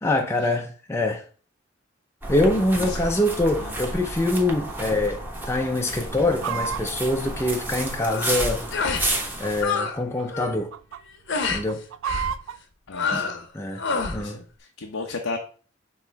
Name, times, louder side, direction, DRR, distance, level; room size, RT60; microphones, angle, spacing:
voice 1, 0.0-1.2 2.3-5.2 5.5-8.6 9.4-10.7 11.5-11.8 13.1-13.2 13.5-13.8 14.1-14.4, left 1 dB, 15° left, 0.5 m, -24 dB
sound 1, 2.2-9.6, right 1 dB, 10° right, 1.0 m, -31 dB
Chicken rooster, 4.7-5.1 5.4-5.5 5.9-8.2 8.9-9.7 10.0-10.2 10.5-11.0 11.5-12.6, right 8 dB, 70° right, 0.3 m, -32 dB
sound 2, 8.0-8.4 8.7-9.1 9.4-10.0 10.2-10.6 11.3-11.6 12.1-12.3 12.9-13.4 13.8-14.2, left 5 dB, 65° left, 0.9 m, -27 dB
voice 2, 12.9-13.5 14.1-15.4, left 3 dB, 90° left, 0.8 m, -34 dB
6.6 x 3.1 x 4.5 m
head